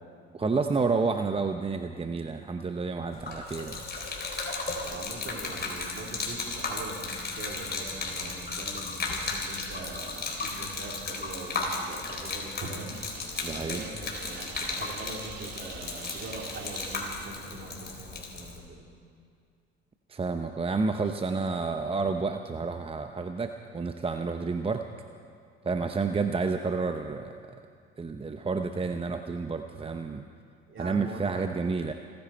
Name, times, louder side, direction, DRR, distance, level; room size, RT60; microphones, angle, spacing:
voice 1, 0.3-3.8 13.4-13.8 20.1-24.8 25.6-27.6 28.0-30.2 30.8-31.9, right 4 dB, 20° right, 7 dB, 0.8 m, -30 dB
Gurgling / Liquid, 3.1-18.6, left 3 dB, 30° left, 3.8 m, -35 dB
voice 2, 4.9-13.0 13.5-18.8 30.7-31.5, right 2 dB, 40° right, -1 dB, 4.0 m, -42 dB
sound 1, 12.9-18.0, right 7 dB, 55° right, 1.6 m, -46 dB
28.5 x 10.5 x 4.5 m, 2.3 s
hypercardioid pair, 65°, 31 cm